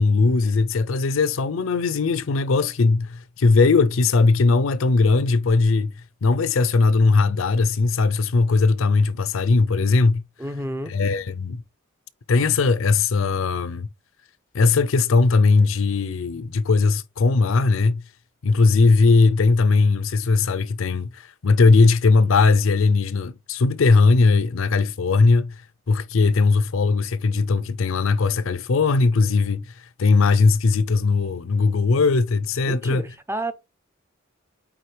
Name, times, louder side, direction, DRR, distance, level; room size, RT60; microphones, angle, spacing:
voice 1, 0.0-5.9 6.2-10.2 10.9-11.6 12.3-13.9 14.5-18.0 18.4-25.5 25.9-29.6 30.0-33.0, left 3 dB, 70° left, 0.5 m, -19 dB
voice 2, 10.4-10.9 32.7-33.5, right 1 dB, 10° right, 0.6 m, -30 dB
8.8 x 3.7 x 3.2 m
head